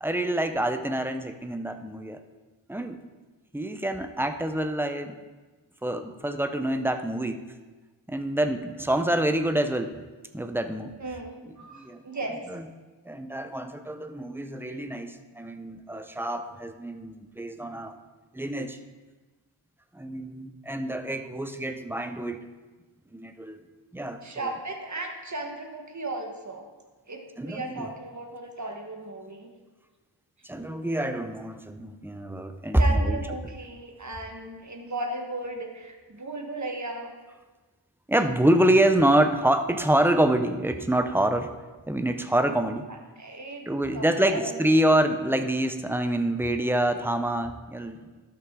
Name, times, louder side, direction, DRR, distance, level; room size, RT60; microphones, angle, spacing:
voice 1, 0.0-2.2 2.7-3.0 3.5-5.2 5.8-7.4 8.1-10.0 10.3-10.9 11.4-12.0 12.3-12.7 13.1-17.9 18.3-18.8 19.9-22.4 23.1-23.6 23.9-24.5 27.4-27.9 30.4-33.2 38.1-41.5 41.9-42.9 43.7-48.0, right 1 dB, 5° right, 8 dB, 0.6 m, -26 dB
voice 2, 11.0-12.3 24.2-26.7 27.1-29.5 32.8-37.1 43.2-43.7 43.9-44.6, right 2 dB, 35° right, 2 dB, 1.4 m, -36 dB
12.5 x 5.9 x 3.7 m, 1.3 s
wide cardioid pair, 65°, 47 cm